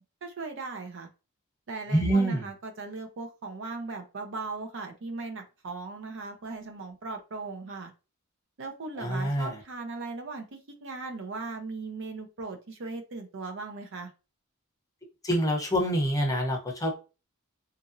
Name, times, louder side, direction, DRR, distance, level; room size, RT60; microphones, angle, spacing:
voice 1, 0.2-1.1 1.7-7.9 8.6-14.1, right 3 dB, 60° right, 5 dB, 0.6 m, -38 dB
voice 2, 1.9-2.4 9.0-9.5 15.2-17.0, right 1 dB, 15° left, 1 dB, 0.6 m, -26 dB
2.9 x 2.5 x 2.5 m, 0.31 s
head